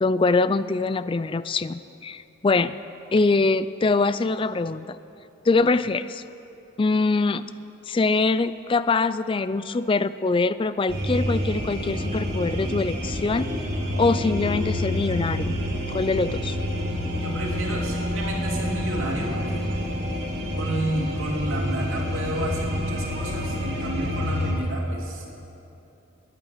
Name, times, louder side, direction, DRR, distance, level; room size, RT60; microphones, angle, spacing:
voice 1, 0.0-2.7 3.1-5.0 5.4-6.2 6.8-7.6 7.9-13.5 14.0-15.6 15.9-16.6, left 3 dB, 25° left, 15 dB, 0.3 m, -23 dB
sound 1, 10.9-24.5, left 1 dB, 55° right, 2.4 m, -28 dB
voice 2, 17.2-19.7 20.5-25.3, right 1 dB, 85° right, -1 dB, 2.9 m, -31 dB
19.0 x 10.0 x 6.6 m, 2.9 s
head